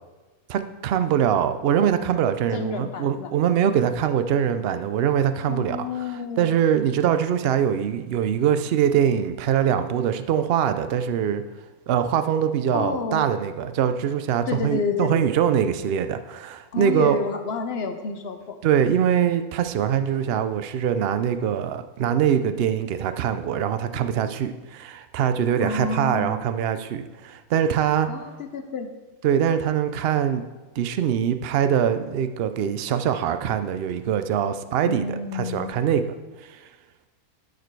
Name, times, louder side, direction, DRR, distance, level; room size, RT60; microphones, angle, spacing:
voice 1, 0.5-11.4 11.9-17.2 18.6-28.1 29.2-30.4 30.8-35.1 35.3-36.2 36.4-36.6, right 9 dB, 70° right, 10 dB, 0.5 m, -23 dB
voice 2, 2.5-3.3 5.5-6.5 12.7-13.3 14.5-15.3 16.7-18.6 25.6-26.4 28.1-28.9 34.8-35.7, left 4 dB, 55° left, 7 dB, 0.8 m, -29 dB
12.5 x 5.0 x 4.6 m, 1.2 s
omnidirectional pair, 1.6 m